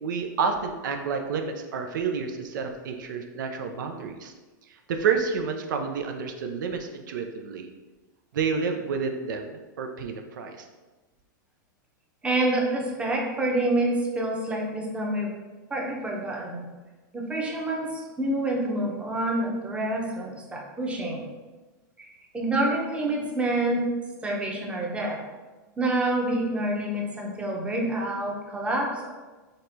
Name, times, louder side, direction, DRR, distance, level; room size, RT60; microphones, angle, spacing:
voice 1, 0.0-4.3 4.7-7.7 8.3-10.7, right 5 dB, 75° right, 4 dB, 0.4 m, -29 dB
voice 2, 12.2-15.3 15.7-16.7 17.1-21.3 22.0-23.8 24.2-25.2 25.8-29.1, right 1 dB, 10° right, -1 dB, 0.8 m, -27 dB
4.0 x 3.2 x 2.6 m, 1.2 s
hypercardioid pair, 110°, 10 cm